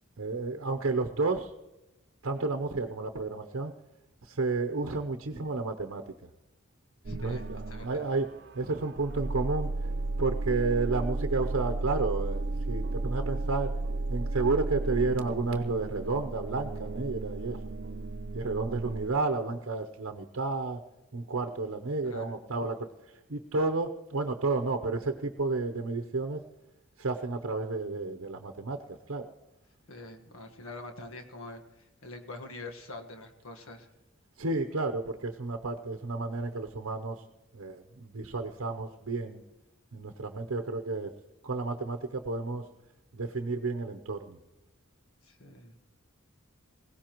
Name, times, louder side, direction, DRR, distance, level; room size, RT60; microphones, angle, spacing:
voice 1, 0.2-1.5 2.2-3.7 4.2-6.0 7.2-9.7 10.2-13.7 14.1-17.6 18.3-20.8 21.1-22.9 23.3-26.4 27.0-28.8 29.1-29.3 34.4-37.2 37.5-39.4 39.9-41.1 41.4-42.6 43.1-44.4, right 3 dB, 75° right, 5 dB, 0.8 m, -31 dB
voice 2, 7.0-8.1 22.0-22.3 29.9-33.9 45.2-45.8, left 2 dB, 80° left, 5 dB, 1.5 m, -45 dB
sound 1, 7.0-19.1, right 2 dB, 50° right, 0.5 m, -34 dB
20.5 x 17.0 x 3.0 m, 0.98 s
head